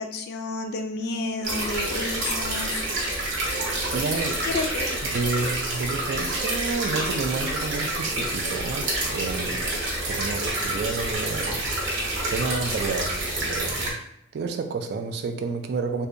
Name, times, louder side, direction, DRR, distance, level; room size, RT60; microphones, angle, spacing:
voice 1, 0.0-2.8 4.4-5.0, left 3 dB, 55° left, 5 dB, 0.3 m, -30 dB
sound 1, 1.4-13.9, right 1 dB, 80° right, 0.8 m, -28 dB
sound 2, 3.5-4.5 6.4-7.1, right 8 dB, 5° left, 0.5 m, -43 dB
voice 2, 3.9-4.4 5.1-9.7 10.1-11.7 12.3-14.0 14.3-16.1, right 4 dB, 60° right, 6 dB, 0.3 m, -30 dB
2.7 x 2.2 x 2.5 m, 0.73 s
head